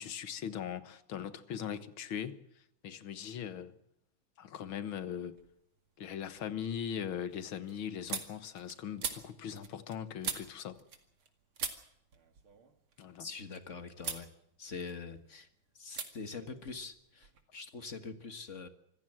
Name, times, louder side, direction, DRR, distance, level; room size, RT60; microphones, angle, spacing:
voice 1, 0.0-3.7 4.4-5.4 6.0-10.8 13.0-13.3, left 8 dB, 75° left, 2.1 m, -40 dB
sound 1, 5.3-5.9 6.2-11.3 11.6-13.6 14.0-14.3 14.7-15.4 15.9-16.1 16.4-17.4, right 6 dB, 85° right, 3.0 m, -43 dB
voice 2, 13.2-14.3 14.6-15.5 15.7-18.7, left 4 dB, 40° left, 1.7 m, -44 dB
25.5 x 15.5 x 7.7 m
omnidirectional pair, 2.2 m